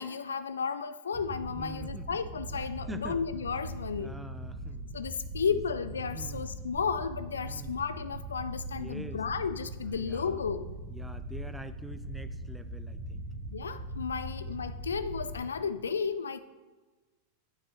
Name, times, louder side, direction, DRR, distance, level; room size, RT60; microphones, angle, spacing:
voice 1, 0.0-4.1 4.9-10.7 13.5-16.4, left 6 dB, 70° left, 0.3 m, -33 dB
sound 1, 1.1-15.5, right 1 dB, 40° right, 1.1 m, -40 dB
voice 2, 1.5-2.1 2.5-3.3 3.9-5.0 5.5-5.6 6.1-6.5 7.4-7.8 8.7-9.2 9.8-10.4 10.9-13.3 15.5-15.8, right 2 dB, 5° right, 0.4 m, -46 dB
8.6 x 6.0 x 3.0 m
figure-of-eight pair, 90°, 0 cm